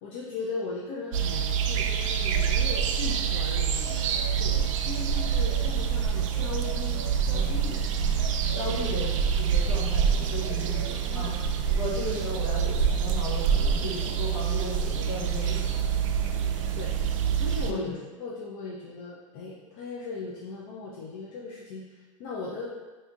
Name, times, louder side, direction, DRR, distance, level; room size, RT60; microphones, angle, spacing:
voice 1, 0.0-7.8 8.6-8.9 10.5-11.3 16.2-22.7, left 4 dB, 35° left, -4 dB, 0.4 m, -38 dB
sound 1, 1.1-17.7, right 7 dB, 70° right, 0.4 m, -26 dB
voice 2, 8.5-11.3 11.7-15.7 17.6-17.9, left 2 dB, 55° left, -6 dB, 1.5 m, -35 dB
5.1 x 2.6 x 2.3 m, 1.2 s
supercardioid pair, 175°, 17 cm